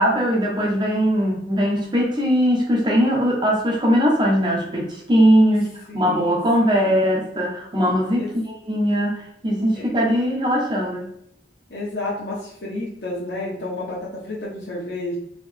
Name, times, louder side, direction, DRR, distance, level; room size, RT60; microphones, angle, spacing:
voice 1, 0.0-8.3 8.7-11.1, equal, 25° right, -1 dB, 1.0 m, -20 dB
voice 2, 5.9-7.1 8.1-8.3 9.7-9.9 11.7-15.2, left 2 dB, 75° left, -7 dB, 1.1 m, -31 dB
4.1 x 3.0 x 3.4 m, 0.71 s
head